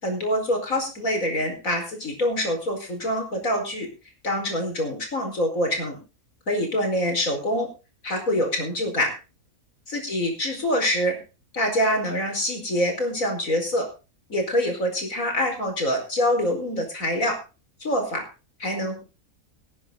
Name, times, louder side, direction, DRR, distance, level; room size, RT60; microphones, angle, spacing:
voice 1, 0.0-3.9 4.2-6.0 6.5-7.7 8.0-9.1 9.9-11.2 11.5-13.9 14.3-17.4 17.8-18.2 18.6-19.0, equal, 65° left, 4 dB, 5.1 m, -25 dB
19.0 x 9.8 x 4.0 m, 0.32 s
omnidirectional pair, 1.5 m